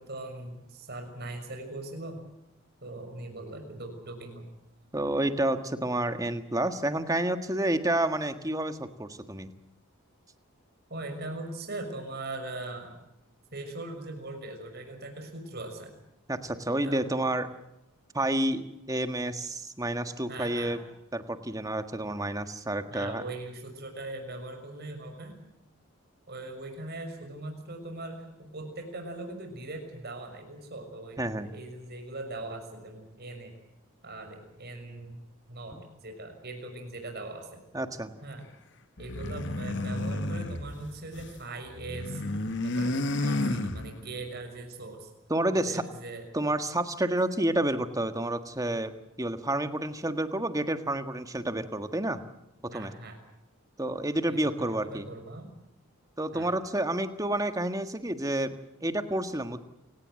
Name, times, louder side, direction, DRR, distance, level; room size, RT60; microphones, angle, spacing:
voice 1, 0.0-2.2 2.8-4.5 10.9-13.0 13.5-15.9 16.8-17.2 20.3-20.8 22.9-25.3 26.3-33.5 34.0-35.2 35.5-37.6 38.2-38.5 39.0-42.2 42.6-45.1 45.5-46.3 52.7-53.2 54.3-55.5 56.3-56.5, right 2 dB, 45° right, 5 dB, 6.3 m, -40 dB
voice 2, 4.9-9.5 16.3-17.5 18.1-20.8 21.1-23.2 31.2-31.5 35.7-35.8 37.7-38.1 45.3-45.8 46.3-48.9 49.2-52.2 52.7-52.9 53.8-55.1 56.2-59.6, right 1 dB, 15° right, 9 dB, 1.6 m, -29 dB
sound 1, 39.0-41.4 41.7-44.2, left 2 dB, 55° left, 1.7 m, -32 dB
28.5 x 18.0 x 7.7 m, 0.85 s
head